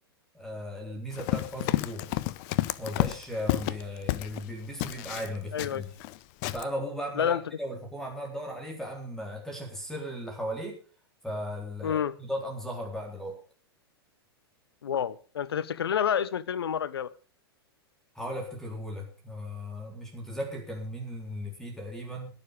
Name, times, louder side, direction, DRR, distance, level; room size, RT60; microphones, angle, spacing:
voice 1, 0.3-2.1 2.8-5.9 6.5-10.8 11.2-13.4 18.2-22.3, equal, 5° left, 3.8 m, -36 dB
Run, 1.1-4.4 4.8-6.2 6.4-6.6, left 18 dB, 45° left, 0.7 m, -30 dB
voice 2, 5.5-5.8 7.2-7.4 11.8-12.2 14.8-17.1, left 8 dB, 75° left, 0.8 m, -28 dB
21.5 x 7.1 x 5.1 m
hypercardioid pair, 105°, 13 cm